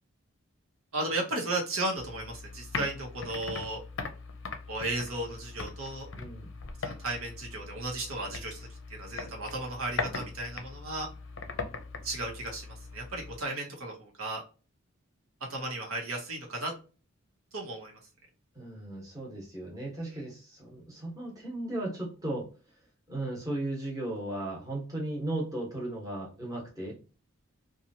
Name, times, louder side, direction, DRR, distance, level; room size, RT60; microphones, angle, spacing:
voice 1, 0.9-3.8 4.7-6.1 6.8-11.1 12.0-14.4 15.4-16.7 17.5-18.0, right 2 dB, 80° right, 0 dB, 1.0 m, -35 dB
sound 1, 2.0-13.4, left 4 dB, 55° left, 0.5 m, -40 dB
voice 2, 6.1-6.5 18.5-22.5 23.1-26.9, right 1 dB, 15° right, -4 dB, 1.0 m, -36 dB
2.9 x 2.3 x 2.7 m, 0.35 s
head